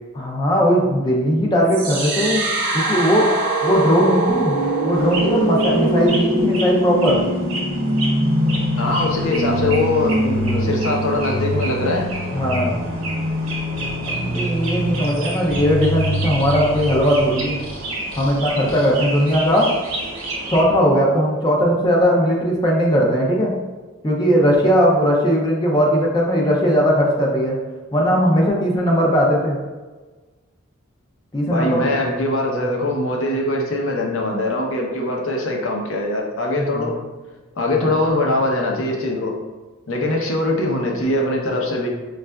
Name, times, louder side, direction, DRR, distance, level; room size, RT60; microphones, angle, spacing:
voice 1, 0.2-2.5 2.7-3.3 3.6-4.6 4.8-7.2 12.3-12.8 14.1-17.6 18.2-19.7 20.5-23.5 24.0-27.6 27.9-29.6 31.3-31.9 36.6-36.9 37.8-37.9, equal, 20° left, -2 dB, 0.4 m, -18 dB
sound 1, 1.7-17.7, right 1 dB, 40° right, 0.6 m, -23 dB
sound 2, 4.9-20.6, right 2 dB, 80° right, 0.8 m, -31 dB
voice 2, 8.8-12.1 31.5-36.9 37.6-39.3 39.9-41.9, left 2 dB, 70° left, -1 dB, 0.7 m, -22 dB
5.2 x 2.4 x 2.2 m, 1.3 s
head